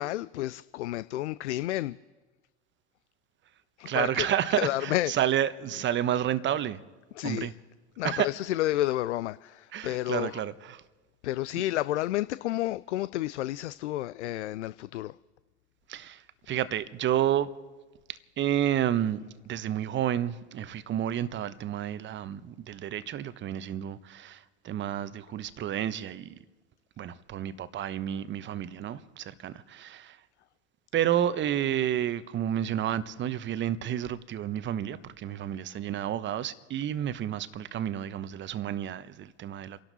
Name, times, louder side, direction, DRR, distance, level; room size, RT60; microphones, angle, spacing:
voice 1, 0.0-2.0 3.8-5.1 7.2-7.5 8.0-10.4 11.2-15.2, left 15 dB, 80° left, 0.5 m, -31 dB
voice 2, 3.8-6.8 7.2-7.5 8.0-8.3 9.7-10.8 15.9-17.5 18.4-19.2 19.5-26.3 27.0-30.2 30.9-39.8, right 11 dB, 35° right, 1.0 m, -30 dB
29.5 x 12.0 x 4.1 m
hypercardioid pair, 85°, 35 cm